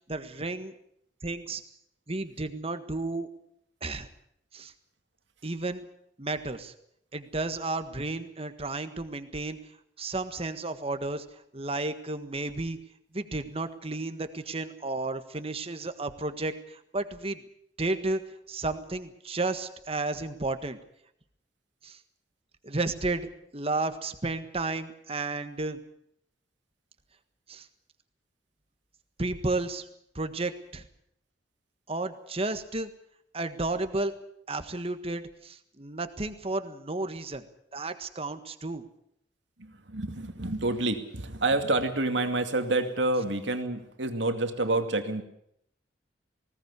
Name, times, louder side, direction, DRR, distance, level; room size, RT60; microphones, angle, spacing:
voice 1, 0.1-0.7 1.2-1.6 2.1-3.3 3.8-4.1 4.5-4.7 5.4-5.8 6.2-6.7 7.1-9.6 10.0-11.2 11.5-12.8 13.1-17.4 17.8-18.2 18.5-20.8 21.8-22.0 22.6-23.3 23.5-25.8 27.5-27.7 29.2-29.9 30.1-30.8 31.9-32.9 33.3-34.1 34.5-37.4 37.7-38.8, right 2 dB, 35° right, 9 dB, 1.6 m, -32 dB
voice 2, 39.6-45.2, right 2 dB, 85° right, 7 dB, 2.3 m, -28 dB
20.0 x 18.0 x 8.3 m, 0.73 s
head